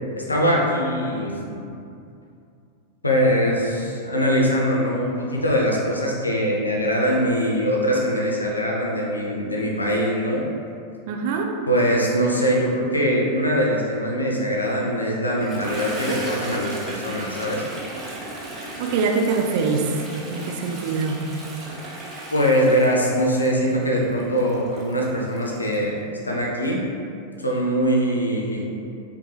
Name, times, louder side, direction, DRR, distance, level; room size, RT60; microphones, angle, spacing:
voice 1, 0.2-1.6 3.0-10.5 11.7-17.6 22.3-26.8 27.4-28.6, equal, 80° left, -2 dB, 0.6 m, -22 dB
voice 2, 11.1-11.5 18.8-19.9 20.3-21.2, right 5 dB, 50° right, 3 dB, 0.4 m, -23 dB
Toilet flush, 15.3-25.8, right 1 dB, 15° right, 0.8 m, -36 dB
5.1 x 2.3 x 3.1 m, 2.5 s
figure-of-eight pair, 90°, 0 cm